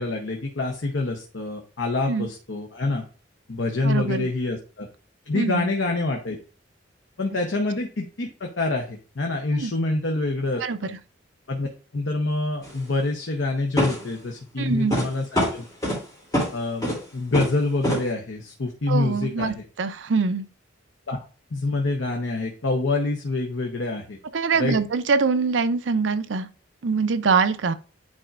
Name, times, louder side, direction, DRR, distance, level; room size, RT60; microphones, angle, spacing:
voice 1, 0.0-3.0 3.5-4.9 5.3-6.4 7.2-10.9 11.5-11.7 11.9-15.6 16.5-19.5 21.1-21.2 21.5-24.2 24.6-24.8, left 2 dB, 90° left, 0.9 m, -26 dB
voice 2, 3.8-4.3 5.3-5.7 9.5-9.7 10.6-11.0 14.6-15.0 18.9-20.5 24.3-26.5 26.8-27.7, right 4 dB, 80° right, 0.5 m, -24 dB
sound 1, 12.6-12.8 13.8-14.2 14.9-15.1 15.3-16.0 16.3-16.5 16.8-17.0 17.3-17.6 17.8-18.0, equal, 20° left, 2.8 m, -24 dB
9.7 x 4.3 x 2.5 m
head